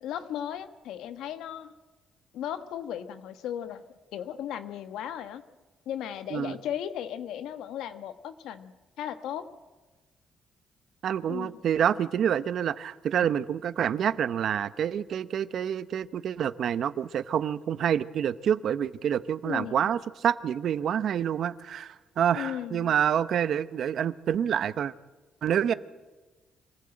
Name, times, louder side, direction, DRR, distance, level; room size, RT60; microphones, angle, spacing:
voice 1, 0.0-1.7 2.3-3.9 4.1-5.4 5.9-9.5 11.3-11.6 19.4-19.9 22.3-22.9, left 10 dB, 85° left, 10 dB, 1.2 m, -36 dB
voice 2, 11.0-24.9 25.4-25.7, right 9 dB, 65° right, 15 dB, 0.8 m, -27 dB
25.0 x 15.5 x 8.9 m, 1.2 s
cardioid pair, 90°, 0 cm